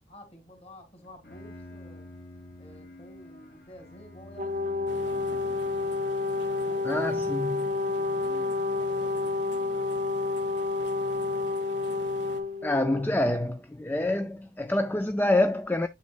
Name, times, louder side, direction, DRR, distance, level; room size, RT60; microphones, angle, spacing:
voice 1, 0.1-2.1 2.6-6.0 6.4-9.9, equal, 35° left, 2.4 m, -51 dB
Bowed string instrument, 1.0-6.1, left 1 dB, 55° left, 2.4 m, -48 dB
Brass instrument, 4.4-13.1, left 3 dB, 40° right, 0.7 m, -29 dB
sound 1, 4.9-12.4, left 3 dB, 80° left, 1.0 m, -45 dB
voice 2, 6.8-7.7 12.6-15.9, left 1 dB, 10° left, 0.3 m, -27 dB
8.3 x 6.0 x 2.3 m
head